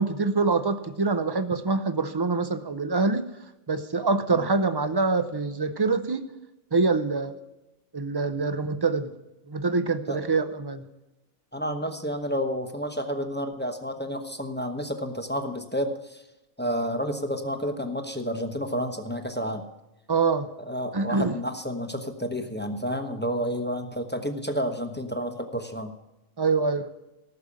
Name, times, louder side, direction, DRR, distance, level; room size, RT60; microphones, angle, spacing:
voice 1, 0.0-3.2 3.7-6.2 6.7-7.3 7.9-9.1 9.5-10.9 20.1-20.5 20.9-21.3 26.4-26.9, right 4 dB, 40° right, 11 dB, 0.3 m, -25 dB
voice 2, 11.5-16.2 16.6-19.6 20.7-25.9, equal, 10° left, 6 dB, 0.7 m, -30 dB
14.0 x 6.8 x 8.6 m, 0.95 s
omnidirectional pair, 1.4 m